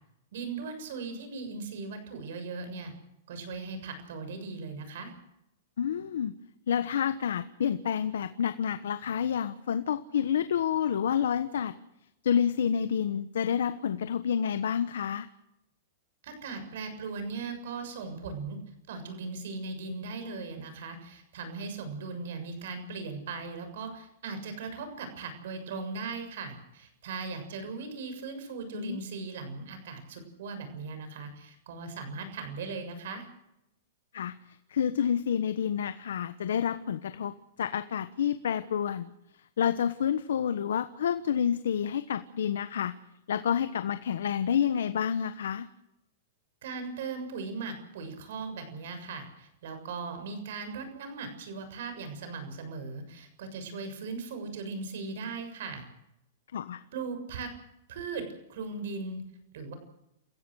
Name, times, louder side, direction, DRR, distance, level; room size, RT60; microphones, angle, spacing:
voice 1, 0.3-2.9 3.3-5.1 16.2-18.6 18.9-33.3 46.6-55.8 56.9-57.5 57.9-58.2 58.5-59.2 59.5-59.7, right 4 dB, 65° right, 8 dB, 7.0 m, -38 dB
voice 2, 5.8-6.3 6.7-11.7 12.2-15.3 28.7-29.0 34.1-39.1 39.6-43.0 43.3-45.7 56.5-56.8, left 8 dB, 85° left, 11 dB, 1.2 m, -29 dB
29.0 x 16.0 x 6.4 m, 0.86 s
supercardioid pair, 155°, 0 cm